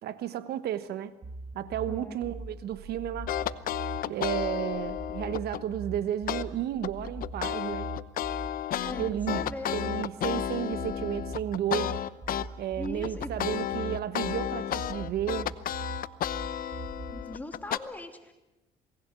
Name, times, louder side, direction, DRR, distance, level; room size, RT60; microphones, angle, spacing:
voice 1, 0.0-1.1 1.5-3.3 4.1-7.9 9.0-9.4 9.7-12.0 12.6-15.5, right 11 dB, 70° right, 1.2 m, -32 dB
sound 1, 1.2-17.2, right 2 dB, 35° right, 6.1 m, -41 dB
sound 2, 3.3-5.6 6.3-6.4 6.8-12.5 12.8-17.8, left 11 dB, 60° left, 0.9 m, -32 dB
voice 2, 8.8-9.8 12.8-13.3 17.1-18.3, left 1 dB, 10° left, 2.9 m, -39 dB
27.5 x 19.5 x 8.2 m
cardioid pair, 110°, 17 cm